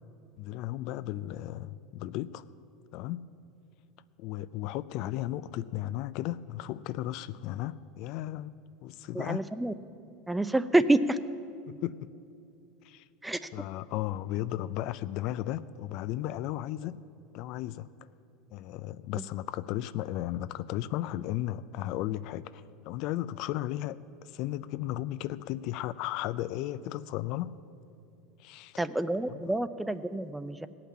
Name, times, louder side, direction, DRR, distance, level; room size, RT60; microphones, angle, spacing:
voice 1, 0.4-2.4 2.9-3.3 4.2-8.5 8.8-9.5 11.7-12.1 12.8-13.1 13.5-17.0 17.3-17.9 18.5-27.5 28.4-28.8 29.3-29.5, left 14 dB, 60° left, 0.4 m, -35 dB
voice 2, 9.1-9.7 10.3-11.2 13.2-13.5 19.2-19.3 28.8-30.7, right 2 dB, 5° right, 0.5 m, -28 dB
16.5 x 5.8 x 8.5 m
supercardioid pair, 115°, 0 cm